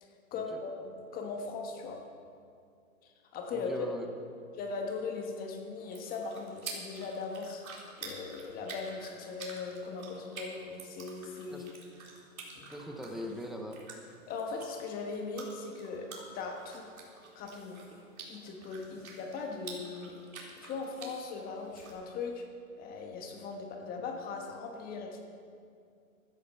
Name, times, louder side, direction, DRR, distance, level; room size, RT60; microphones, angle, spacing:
voice 1, 0.0-2.0 3.0-3.9 4.5-7.7 8.0-11.7 12.6-12.7 14.3-16.9 17.3-17.8 18.3-20.2 20.5-22.5 22.8-25.2, left 4 dB, 20° left, 3 dB, 1.3 m, -39 dB
voice 2, 3.5-4.1 11.5-11.7 12.7-13.8 18.9-19.0, equal, ahead, 3 dB, 0.7 m, -40 dB
sound 1, 5.8-21.9, right 3 dB, 80° right, 4.1 m, -49 dB
15.5 x 12.0 x 5.6 m, 2.4 s
hypercardioid pair, 140°, 42 cm